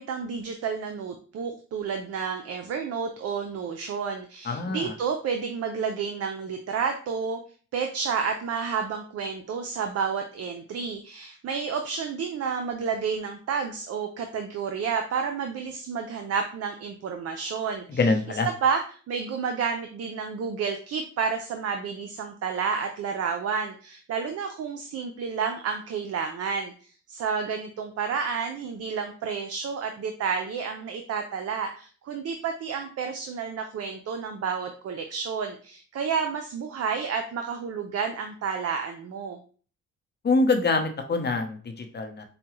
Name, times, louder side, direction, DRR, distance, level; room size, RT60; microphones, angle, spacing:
voice 1, 0.0-7.4 7.7-18.1 18.4-39.4, right 6 dB, 55° right, 5 dB, 0.6 m, -30 dB
voice 2, 4.4-4.9 17.9-18.5 40.2-42.2, left 3 dB, 35° left, 5 dB, 0.8 m, -25 dB
4.8 x 2.2 x 3.0 m, 0.41 s
cardioid pair, 90°, 30 cm